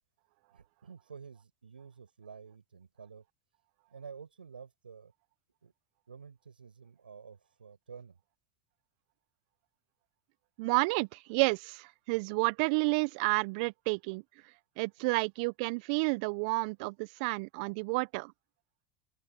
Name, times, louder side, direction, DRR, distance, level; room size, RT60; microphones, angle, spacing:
voice 1, 0.5-3.2 3.9-5.1 5.6-5.7 6.1-8.2, right 6 dB, 90° right, 8.0 m, -50 dB
voice 2, 10.6-14.2 14.8-18.3, right 30 dB, 60° right, 0.9 m, -30 dB
open air
hypercardioid pair, 80°, 5 cm